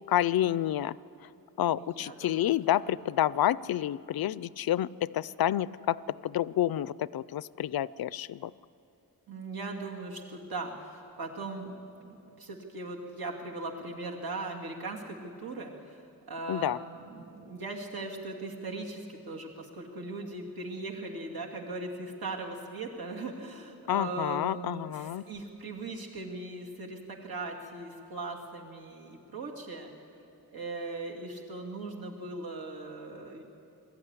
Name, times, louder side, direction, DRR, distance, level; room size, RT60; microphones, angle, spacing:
voice 1, 0.1-1.0 1.6-8.5 16.5-16.8 23.9-25.2, left 12 dB, 75° left, 20 dB, 0.5 m, -29 dB
voice 2, 1.8-2.5 2.8-2.9 9.3-29.9 30.5-33.4, right 2 dB, 75° right, 0 dB, 2.5 m, -39 dB
21.5 x 14.5 x 9.7 m, 2.8 s
wide cardioid pair, 140°, 37 cm